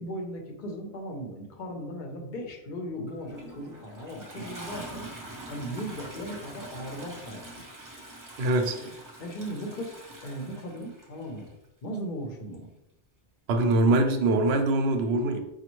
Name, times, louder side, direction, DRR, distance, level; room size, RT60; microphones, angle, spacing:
voice 1, 0.0-5.1 5.5-7.4 8.8-8.9 9.2-11.5 11.8-12.7, equal, 55° left, 3 dB, 0.8 m, -37 dB
Toilet flush, 3.1-11.5 12.5-12.6, right 1 dB, 25° right, 0.6 m, -44 dB
voice 2, 8.4-8.8 13.5-15.4, right 2 dB, 80° right, 5 dB, 0.8 m, -23 dB
5.0 x 2.3 x 3.0 m, 0.90 s
omnidirectional pair, 1.1 m